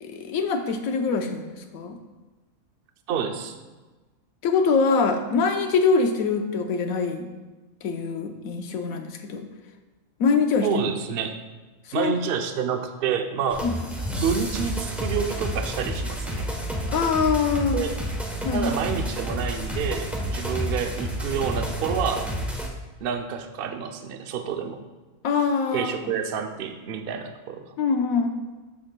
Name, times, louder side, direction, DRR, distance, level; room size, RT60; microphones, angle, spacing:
voice 1, 0.0-2.0 4.4-7.3 7.8-9.5 10.2-10.8 12.0-12.2 13.6-13.7 16.9-17.8 18.4-18.7 25.2-25.9 27.8-28.3, left 5 dB, 85° left, 5 dB, 1.2 m, -24 dB
voice 2, 3.1-3.6 10.6-11.4 11.9-13.7 14.1-16.5 17.6-18.0 18.5-22.3 23.0-24.8 25.7-27.7, right 7 dB, 55° right, 6 dB, 0.7 m, -28 dB
sound 1, 13.5-22.7, equal, ahead, 0.7 m, -30 dB
12.5 x 5.9 x 2.2 m, 1.2 s
omnidirectional pair, 1.4 m